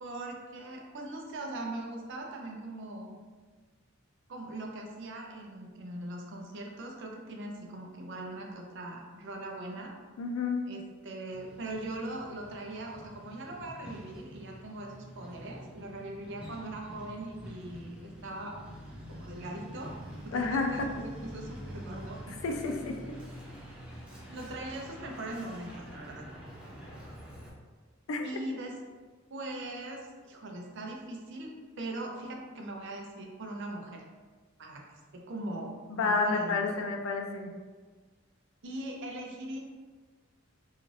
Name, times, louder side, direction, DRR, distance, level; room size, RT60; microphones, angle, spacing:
voice 1, 0.0-3.2 4.3-9.9 10.7-18.6 19.1-19.9 20.2-22.8 24.3-26.2 28.2-28.8 29.3-34.0 34.6-34.8 35.1-36.8 38.6-39.6, right 1 dB, 60° right, 0 dB, 0.5 m, -40 dB
voice 2, 10.2-10.6 20.3-20.9 22.4-23.2 28.1-28.3 35.9-37.5, left 4 dB, 70° left, 4 dB, 0.4 m, -30 dB
Truck, 11.3-27.5, equal, 5° right, 0.5 m, -47 dB
2.5 x 2.3 x 3.1 m, 1.4 s
head